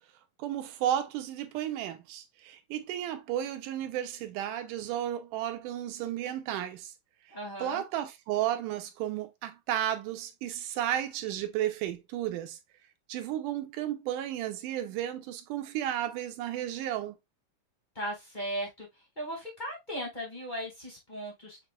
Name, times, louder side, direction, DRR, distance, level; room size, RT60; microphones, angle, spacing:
voice 1, 0.4-6.9 7.6-12.6 13.1-17.2, right 11 dB, 80° right, 2.0 m, -33 dB
voice 2, 7.3-7.8 17.9-18.9 19.1-21.6, equal, 45° left, 0.6 m, -37 dB
6.7 x 3.3 x 2.3 m
omnidirectional pair, 4.1 m